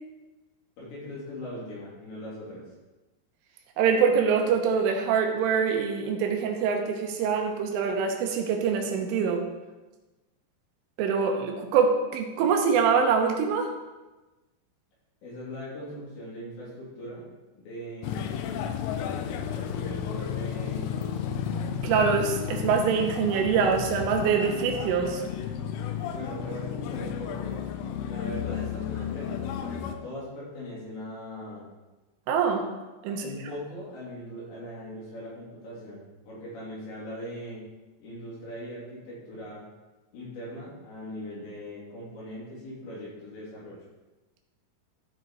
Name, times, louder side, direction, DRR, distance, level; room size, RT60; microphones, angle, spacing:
voice 1, 0.8-2.7 15.2-17.3 17.5-18.6 19.5-21.3 26.1-31.7 33.1-37.6 38.0-39.7 40.1-43.8, equal, 65° left, -7 dB, 5.3 m, -40 dB
voice 2, 3.8-9.5 11.0-13.7 21.8-25.2 32.3-32.6 33.0-33.3, right 6 dB, 80° right, 3 dB, 3.4 m, -24 dB
sound 1, 18.0-30.0, left 8 dB, 85° left, 3.2 m, -33 dB
14.0 x 5.0 x 4.6 m, 1.1 s
omnidirectional pair, 5.8 m